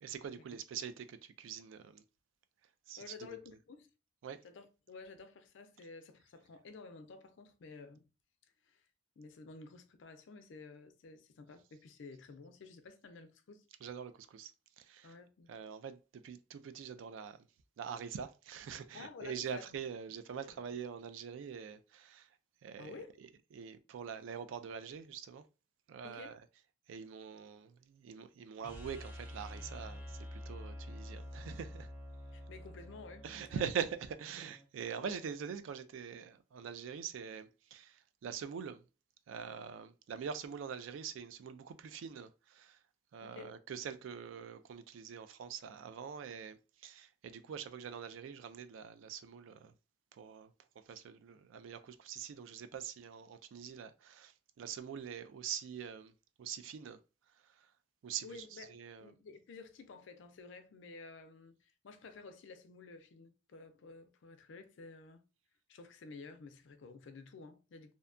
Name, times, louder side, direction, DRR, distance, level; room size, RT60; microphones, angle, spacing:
voice 1, 0.0-2.0 2.9-3.1 4.2-4.4 13.8-14.5 14.8-15.1 15.5-17.5 17.8-22.3 22.6-22.9 23.5-25.4 25.9-26.4 26.9-31.9 33.2-38.8 39.3-42.8 43.1-49.7 50.1-50.5 50.9-56.1 56.4-57.0 57.4-57.7 58.0-59.1, right 7 dB, 85° right, 0.3 m, -44 dB
voice 2, 3.0-3.9 4.4-8.1 8.6-8.9 9.2-13.7 15.0-15.5 18.9-19.8 20.4-20.6 22.8-23.2 26.0-26.4 32.3-33.7 35.0-35.2 43.2-43.6 58.2-65.2 65.7-67.9, left 4 dB, 70° left, 0.4 m, -52 dB
sound 1, 28.6-34.7, left 1 dB, 10° right, 0.6 m, -48 dB
2.6 x 2.2 x 2.4 m
head